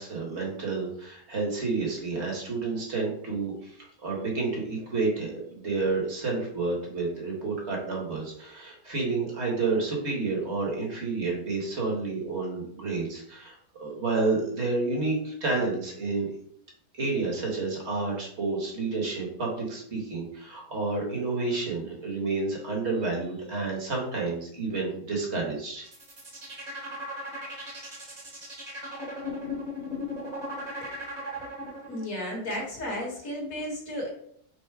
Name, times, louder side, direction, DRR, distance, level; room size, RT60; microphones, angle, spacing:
voice 1, 0.0-16.3 17.0-25.8, right 3 dB, 45° right, -1 dB, 1.4 m, -30 dB
sound 1, 25.8-32.0, left 1 dB, 30° right, 1.1 m, -37 dB
voice 2, 31.8-34.1, equal, 65° left, -2 dB, 1.8 m, -33 dB
4.5 x 2.1 x 4.6 m, 0.66 s
omnidirectional pair, 1.6 m